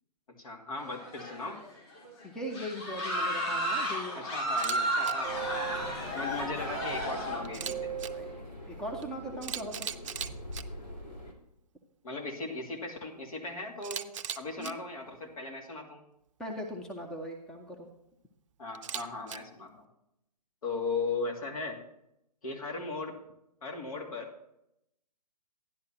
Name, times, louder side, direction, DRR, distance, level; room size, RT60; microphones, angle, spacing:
voice 1, 0.4-1.6 4.1-7.9 12.0-14.1 14.4-16.0 18.6-19.9 20.6-21.8 22.4-23.2 23.6-24.3, left 3 dB, 55° left, 2 dB, 2.4 m, -37 dB
sound 1, 0.8-1.6 2.0-2.1 2.5-7.4, right 1 dB, 40° left, 4.2 m, -33 dB
voice 2, 2.2-4.3 8.1-8.3 8.7-9.9 14.6-14.7 16.4-17.8, equal, 5° left, 2 dB, 0.7 m, -39 dB
Camera, 4.5-4.8 5.0-5.1 7.4-8.1 9.0-9.1 9.4-10.6 13.8-14.7 18.7-19.4, right 9 dB, 50° right, 0.6 m, -37 dB
sound 2, 5.2-11.3, right 3 dB, 85° left, 2.9 m, -40 dB
12.0 x 11.0 x 2.9 m, 0.78 s
figure-of-eight pair, 135°, 21 cm